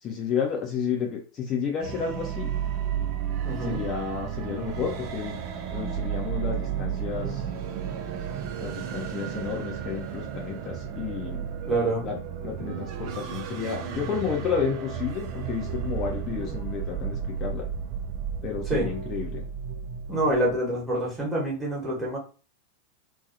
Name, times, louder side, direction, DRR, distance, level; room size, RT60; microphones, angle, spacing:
voice 1, 0.0-2.5 3.7-5.4 5.7-7.4 8.6-11.4 12.0-12.2 12.4-17.7 18.4-19.4, left 6 dB, 30° left, 0 dB, 0.6 m, -31 dB
sound 1, 1.8-20.6, right 8 dB, 40° right, 0.6 m, -33 dB
voice 2, 3.4-3.8 11.7-12.0 18.7-18.9 20.1-22.2, right 1 dB, 10° right, -5 dB, 1.2 m, -26 dB
2.7 x 2.3 x 2.5 m, 0.35 s
figure-of-eight pair, 90°, 0 cm